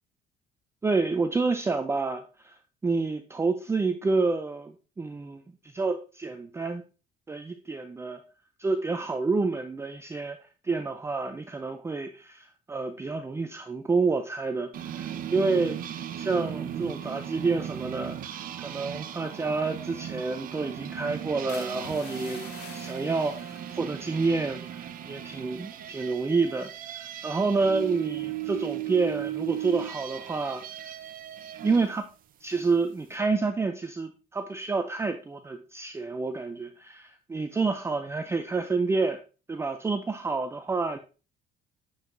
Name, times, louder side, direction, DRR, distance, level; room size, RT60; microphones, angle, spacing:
voice 1, 0.8-2.5 2.8-5.4 5.7-6.8 7.3-8.2 8.6-10.4 10.6-15.8 16.1-18.2 18.6-30.6 31.6-32.1 32.4-39.2 39.5-41.0, right 4 dB, 15° right, 0.4 m, -29 dB
sound 1, 14.7-31.9, right 11 dB, 55° right, 0.7 m, -37 dB
sound 2, 21.5-25.9 26.3-26.6, left 7 dB, 85° left, 0.9 m, -48 dB
7.7 x 4.7 x 2.6 m
cardioid pair, 110°, 17 cm